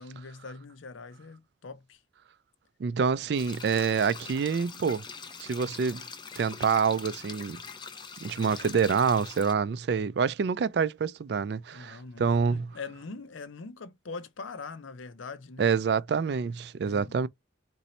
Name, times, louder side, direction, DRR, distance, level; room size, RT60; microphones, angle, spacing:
voice 1, 0.0-2.0 11.7-15.7 16.8-17.2, left 4 dB, 90° left, 0.6 m, -42 dB
voice 2, 2.8-5.0 5.4-6.0 6.4-7.6 8.2-12.6 15.6-17.3, right 6 dB, 60° right, 0.3 m, -27 dB
sound 1, 3.3-9.5, left 5 dB, 25° left, 0.5 m, -43 dB
4.1 x 2.6 x 4.2 m
head